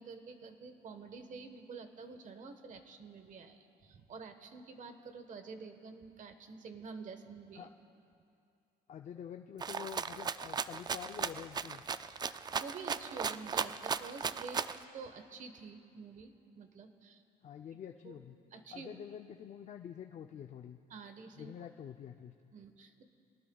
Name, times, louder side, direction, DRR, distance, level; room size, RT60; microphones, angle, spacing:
voice 1, 0.0-7.7 12.6-14.7 14.9-17.2 18.0-18.2 18.5-19.0 20.9-21.5 22.5-23.0, right 4 dB, 50° right, 8 dB, 1.3 m, -48 dB
voice 2, 8.9-11.8 17.4-18.4 18.7-20.8 21.3-22.3, left 9 dB, 45° left, 5 dB, 0.6 m, -47 dB
Rattle (instrument), 9.6-14.8, right 6 dB, 25° right, 0.4 m, -36 dB
26.0 x 18.5 x 2.4 m, 2.5 s
cardioid pair, 110°, 17 cm